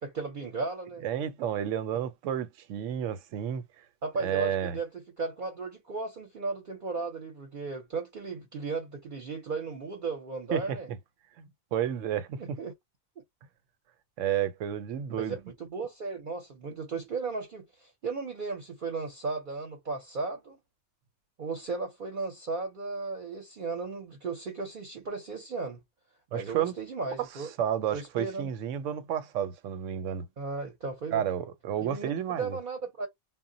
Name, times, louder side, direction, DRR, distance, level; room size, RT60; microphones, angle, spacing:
voice 1, 0.0-1.0 4.0-10.9 12.4-12.7 15.2-20.6 21.4-25.8 26.3-27.5 27.9-28.5 30.4-31.2 31.8-33.1, right 4 dB, 50° right, 0.7 m, -35 dB
voice 2, 1.0-3.6 4.2-4.8 10.5-11.0 11.4-12.6 14.2-15.4 26.3-26.7 27.3-30.3 31.1-32.6, right 9 dB, 80° right, 0.9 m, -31 dB
2.1 x 2.1 x 3.7 m
omnidirectional pair, 1.3 m